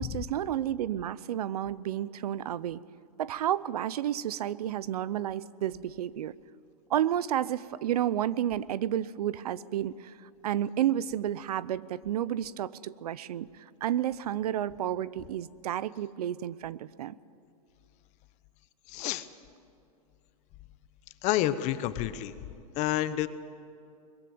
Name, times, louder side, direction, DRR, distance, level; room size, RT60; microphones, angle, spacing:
voice 1, 0.0-2.8 3.2-6.3 6.9-10.1 10.4-13.5 13.8-17.1, right 11 dB, 75° right, 20 dB, 0.7 m, -31 dB
voice 2, 18.9-19.3 21.2-22.3 22.7-23.3, left 13 dB, 35° left, 13 dB, 1.1 m, -29 dB
21.5 x 16.0 x 9.3 m, 2.7 s
hypercardioid pair, 135°, 20 cm